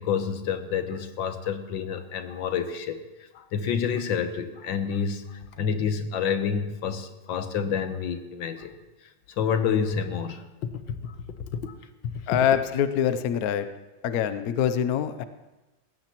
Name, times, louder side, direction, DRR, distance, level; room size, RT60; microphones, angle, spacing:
voice 1, 0.0-3.0 3.3-8.7 9.3-10.5 10.9-11.1 11.5-11.7, left 7 dB, 80° left, 8 dB, 1.7 m, -28 dB
voice 2, 12.3-13.7 14.0-15.2, left 9 dB, 65° left, 11 dB, 1.0 m, -24 dB
19.0 x 15.5 x 3.0 m, 1.1 s
omnidirectional pair, 2.1 m